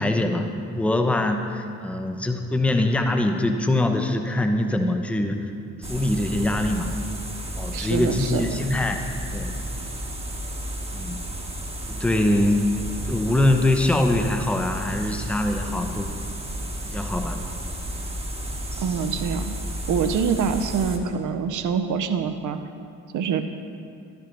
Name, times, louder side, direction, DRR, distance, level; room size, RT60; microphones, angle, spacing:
voice 1, 0.0-5.5 5.8-6.9 7.6-9.5 10.9-11.2 11.9-12.6 13.0-16.2 16.8-17.4, left 1 dB, 5° left, 5 dB, 0.6 m, -23 dB
sound 1, 5.8-21.0, right 1 dB, 15° right, 1.1 m, -32 dB
voice 2, 7.7-8.6 18.8-19.5 19.9-22.6 23.1-23.4, right 6 dB, 50° right, 9 dB, 0.6 m, -25 dB
12.0 x 5.2 x 3.0 m, 2.4 s
hypercardioid pair, 40°, 40 cm